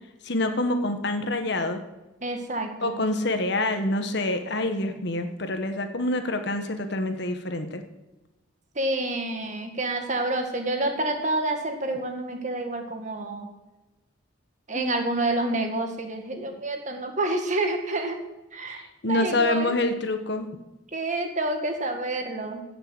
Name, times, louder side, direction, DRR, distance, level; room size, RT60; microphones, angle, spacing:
voice 1, 0.2-1.8 2.8-7.8 14.7-14.9 18.8-20.5, left 2 dB, 60° left, 7 dB, 1.4 m, -26 dB
voice 2, 2.2-3.0 8.8-13.5 14.7-18.2 18.5-18.8 19.1-19.8 20.9-22.6, right 2 dB, 40° right, 4 dB, 2.0 m, -28 dB
15.5 x 6.8 x 7.8 m, 1.0 s
head